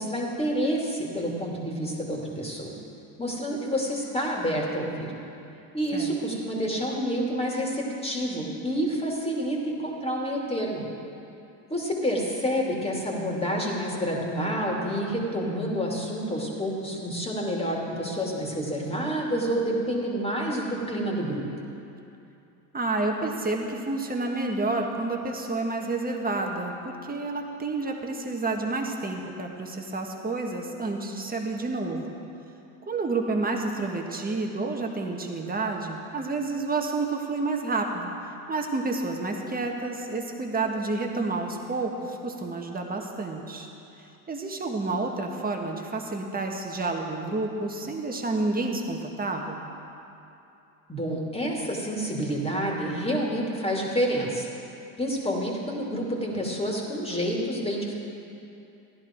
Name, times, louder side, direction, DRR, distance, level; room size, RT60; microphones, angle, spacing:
voice 1, 0.0-2.7 3.2-5.1 5.7-10.8 11.7-21.4 50.9-54.5 55.0-57.9, equal, 15° left, -2 dB, 2.6 m, -28 dB
voice 2, 22.7-32.1 32.9-43.7 44.0-49.7, right 3 dB, 20° right, 2 dB, 1.6 m, -30 dB
14.5 x 10.5 x 4.5 m, 2.8 s
supercardioid pair, 85°, 44 cm